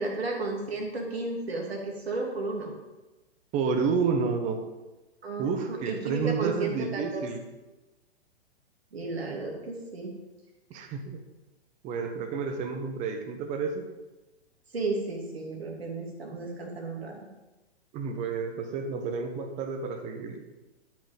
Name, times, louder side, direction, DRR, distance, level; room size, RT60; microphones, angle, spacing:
voice 1, 0.0-2.7 5.2-5.5 5.8-7.2 8.9-10.1 14.7-17.2, right 3 dB, 70° right, 0 dB, 2.9 m, -33 dB
voice 2, 3.5-4.6 5.4-7.4 10.7-11.2 11.8-13.9 17.9-20.4, right 5 dB, 20° right, 5 dB, 1.3 m, -30 dB
12.0 x 6.1 x 5.2 m, 1.1 s
figure-of-eight pair, 115°, 32 cm